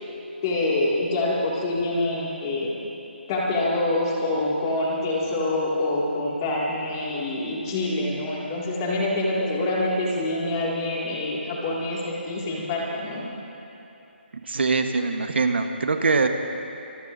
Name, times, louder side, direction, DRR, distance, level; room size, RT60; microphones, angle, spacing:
voice 1, 0.4-2.7 3.3-13.2, left 2 dB, 20° left, -4 dB, 2.2 m, -26 dB
voice 2, 14.5-16.3, right 4 dB, 65° right, 6 dB, 1.2 m, -23 dB
24.5 x 22.0 x 2.7 m, 3.0 s
hypercardioid pair, 175°, 6 cm